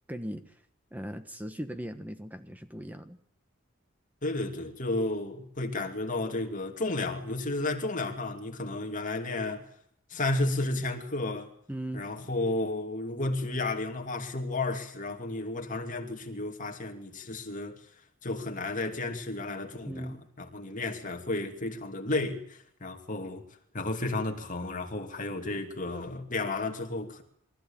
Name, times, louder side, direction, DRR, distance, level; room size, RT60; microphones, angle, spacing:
voice 1, 0.1-0.6 0.9-3.2 11.7-12.1 19.8-20.2, equal, 10° right, 1.3 m, -38 dB
voice 2, 4.2-9.7 10.1-11.5 11.9-17.8 18.2-23.4 23.7-27.2, left 2 dB, 40° left, 3.0 m, -32 dB
23.5 x 15.0 x 8.9 m
head